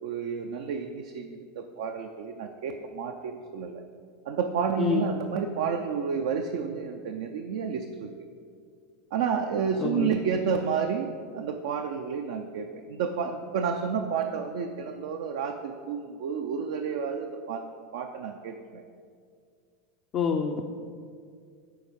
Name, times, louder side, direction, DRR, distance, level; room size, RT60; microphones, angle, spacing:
voice 1, 0.0-3.8 4.3-8.1 9.1-11.1 11.3-17.6 17.9-18.8, right 6 dB, 65° right, 4 dB, 0.5 m, -30 dB
voice 2, 9.8-10.2 20.1-20.7, left 6 dB, 45° left, 3 dB, 0.5 m, -27 dB
9.4 x 4.4 x 5.1 m, 2.2 s
hypercardioid pair, 85°, 0 cm